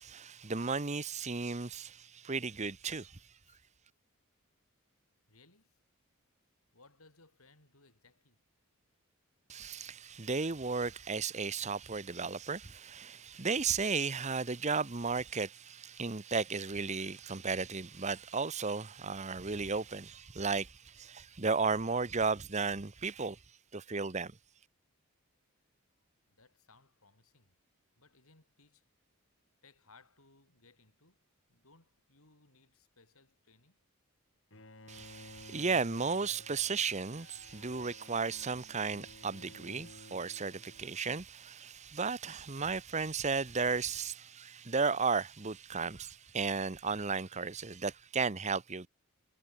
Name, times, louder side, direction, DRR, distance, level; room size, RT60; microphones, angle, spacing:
voice 1, 0.0-3.2 9.5-23.4 23.7-24.3 34.9-48.9, right 4 dB, 30° right, 1.0 m, -34 dB
voice 2, 5.3-5.8 6.7-8.4 13.1-13.3 26.3-27.6 28.0-28.8 29.6-33.8, left 3 dB, 80° left, 7.9 m, -64 dB
Bowed string instrument, 34.5-41.3, left 2 dB, 60° left, 6.2 m, -55 dB
head